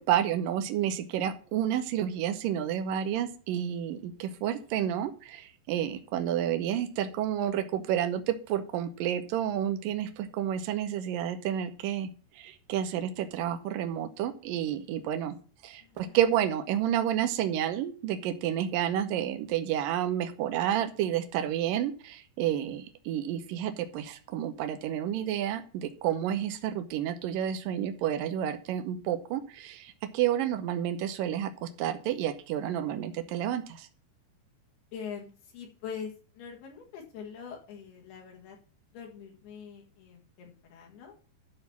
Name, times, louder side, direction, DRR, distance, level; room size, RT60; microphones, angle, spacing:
voice 1, 0.0-12.1 12.4-15.4 15.6-33.9, right 10 dB, 80° right, 8 dB, 2.0 m, -30 dB
voice 2, 4.5-4.8 15.8-16.2 34.9-38.6 38.9-41.2, left 7 dB, 65° left, 0 dB, 3.6 m, -43 dB
12.0 x 4.0 x 7.1 m, 0.40 s
omnidirectional pair, 5.1 m